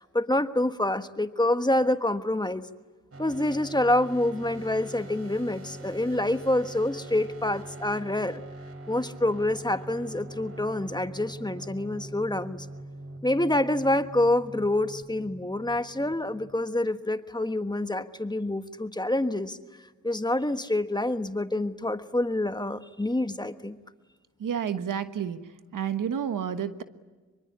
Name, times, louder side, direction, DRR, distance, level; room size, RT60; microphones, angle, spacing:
voice 1, 0.1-2.7 3.2-8.4 8.9-12.7 13.2-19.6 20.0-23.8, left 1 dB, 15° left, 10 dB, 1.3 m, -27 dB
sound 1, 3.1-16.6, right 1 dB, 50° right, 3.3 m, -43 dB
voice 2, 24.4-25.4 25.7-26.8, right 8 dB, 85° right, 10 dB, 1.3 m, -30 dB
24.5 x 24.0 x 10.0 m, 1.3 s
cardioid pair, 60°, 31 cm